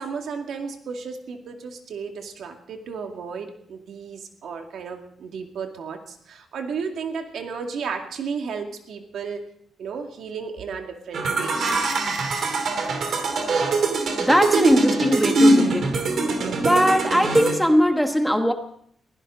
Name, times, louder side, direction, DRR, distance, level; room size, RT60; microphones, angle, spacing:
voice 1, 0.0-9.4 9.8-11.6, right 5 dB, 70° right, 4 dB, 2.2 m, -33 dB
sound 1, 11.1-17.5, right 2 dB, 55° right, 2.7 m, -22 dB
voice 2, 14.2-15.9 16.6-18.5, equal, ahead, 5 dB, 1.2 m, -20 dB
22.0 x 16.0 x 3.9 m, 0.64 s
wide cardioid pair, 160°, 0 cm